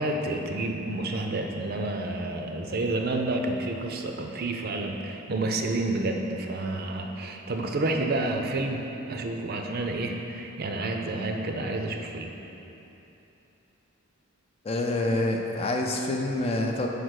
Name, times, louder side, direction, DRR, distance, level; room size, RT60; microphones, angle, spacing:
voice 1, 0.0-12.3, right 2 dB, 45° right, 3 dB, 0.5 m, -29 dB
voice 2, 14.6-16.9, left 2 dB, 30° left, 1 dB, 0.5 m, -27 dB
5.0 x 5.0 x 6.3 m, 3.0 s
head